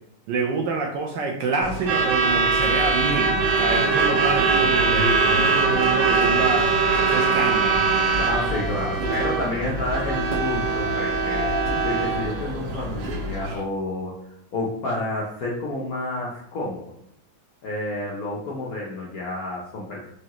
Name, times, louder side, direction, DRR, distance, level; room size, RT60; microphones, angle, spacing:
voice 1, 0.3-6.7 7.1-7.8 13.4-13.5, right 4 dB, 70° right, 0 dB, 1.1 m, -27 dB
Truck / Alarm, 1.6-13.6, right 4 dB, 90° right, 1.7 m, -22 dB
voice 2, 8.2-11.6 11.8-16.9 17.6-20.1, left 2 dB, 65° left, -3 dB, 0.9 m, -30 dB
sound 1, 9.0-9.2 10.3-10.5 11.7-11.8 13.0-13.3, right 2 dB, 30° right, 1.0 m, -32 dB
4.8 x 2.7 x 2.9 m, 0.72 s
omnidirectional pair, 2.3 m